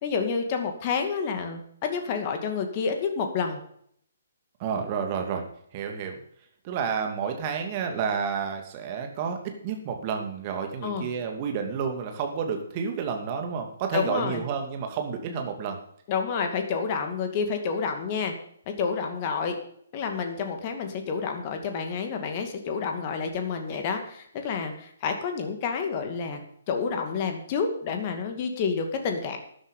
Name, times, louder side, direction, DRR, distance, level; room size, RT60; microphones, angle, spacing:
voice 1, 0.0-3.6 10.8-11.1 13.9-14.4 16.1-18.3 18.7-19.6 19.9-26.4 26.7-29.4, left 5 dB, 30° left, 5 dB, 2.3 m, -29 dB
voice 2, 4.6-5.4 5.7-6.2 6.6-15.8, right 6 dB, 30° right, 4 dB, 2.6 m, -30 dB
13.0 x 11.0 x 5.4 m, 0.67 s
figure-of-eight pair, 130°, 0 cm